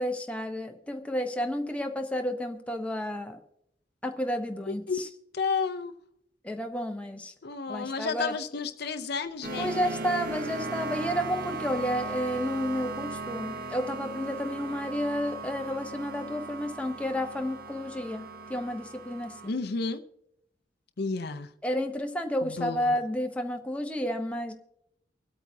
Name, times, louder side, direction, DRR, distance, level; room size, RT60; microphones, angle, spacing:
voice 1, 0.0-3.4 4.0-5.1 6.4-7.3 7.7-8.3 9.6-19.5 21.6-24.5, equal, 5° left, 0.8 m, -31 dB
voice 2, 4.7-5.0 5.3-5.9 7.4-9.8 19.5-20.0 21.0-21.5 22.4-23.0, left 4 dB, 60° left, 0.6 m, -31 dB
sound 1, 9.4-19.5, right 3 dB, 55° right, 0.8 m, -37 dB
24.5 x 8.5 x 2.7 m
head